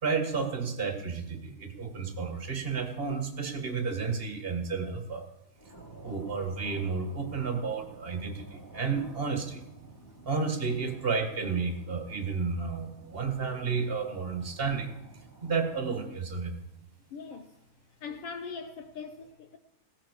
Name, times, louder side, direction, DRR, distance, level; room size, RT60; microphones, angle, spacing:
voice 1, 0.0-5.2 6.0-9.6 10.2-14.9 15.4-16.6, right 5 dB, 25° right, 1.3 m, -31 dB
sound 1, 5.5-15.9, right 2 dB, 5° left, 2.8 m, -52 dB
voice 2, 17.1-17.5 18.0-19.6, left 5 dB, 70° left, 1.4 m, -41 dB
17.5 x 14.0 x 4.9 m
omnidirectional pair, 3.5 m